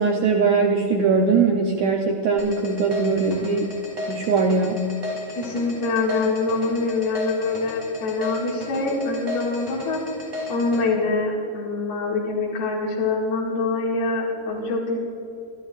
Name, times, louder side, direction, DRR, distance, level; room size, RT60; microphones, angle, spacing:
voice 1, 0.0-3.7 4.1-4.9, right 4 dB, 85° right, 0 dB, 1.6 m, -21 dB
sound 1, 2.4-10.8, left 1 dB, 10° right, 2.6 m, -33 dB
voice 2, 5.4-10.0 10.5-15.0, left 3 dB, 80° left, -5 dB, 4.1 m, -24 dB
24.5 x 12.5 x 2.5 m, 2.7 s
omnidirectional pair, 4.4 m